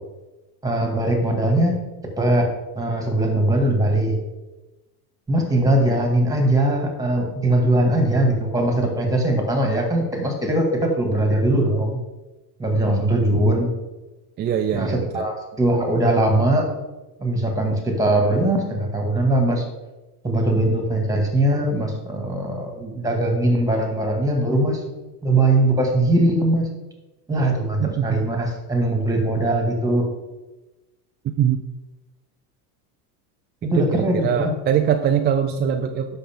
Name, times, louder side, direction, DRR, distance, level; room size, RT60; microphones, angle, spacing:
voice 1, 0.6-1.8 2.2-2.5 2.8-4.2 5.3-12.0 12.6-13.7 14.7-16.7 17.2-19.6 20.2-24.8 25.2-26.7 27.3-30.0 33.6-34.5, right 1 dB, 5° right, 2 dB, 2.2 m, -20 dB
voice 2, 12.9-13.2 14.4-15.3 27.8-28.2 31.4-31.6 33.7-36.2, right 8 dB, 25° right, 5 dB, 0.3 m, -22 dB
10.0 x 6.7 x 3.8 m, 1.1 s
supercardioid pair, 115°, 48 cm